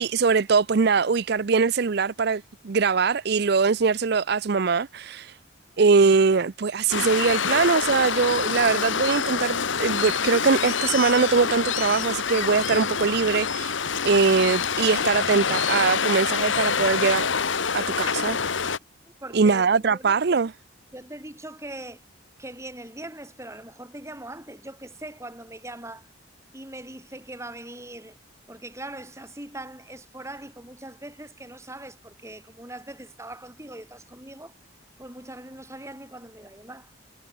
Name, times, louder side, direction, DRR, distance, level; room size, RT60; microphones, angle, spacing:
voice 1, 0.0-5.4 5.8-17.3 17.7-18.7 19.3-20.5, right 5 dB, 55° right, 0.5 m, -22 dB
Waves surf, 6.9-18.8, left 6 dB, 75° left, 1.4 m, -26 dB
voice 2, 19.2-20.4 20.9-22.0 22.4-26.1 26.5-28.2 28.5-34.5 35.0-36.9, right 1 dB, 15° right, 5.6 m, -41 dB
head